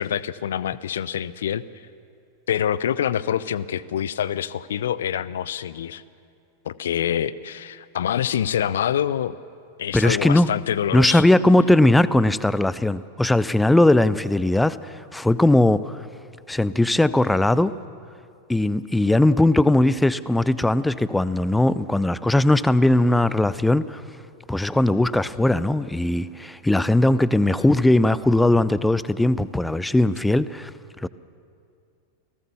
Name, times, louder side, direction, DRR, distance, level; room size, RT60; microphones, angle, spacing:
voice 1, 0.0-1.6 2.5-6.0 6.6-9.3 9.8-11.2, left 9 dB, 60° left, 19 dB, 0.7 m, -26 dB
voice 2, 9.9-10.5 10.9-16.1 16.5-17.8 18.5-24.0 24.5-30.7 31.0-31.1, left 1 dB, 5° left, 17 dB, 0.6 m, -19 dB
29.0 x 18.0 x 7.0 m, 2.4 s
figure-of-eight pair, 90°, 0 cm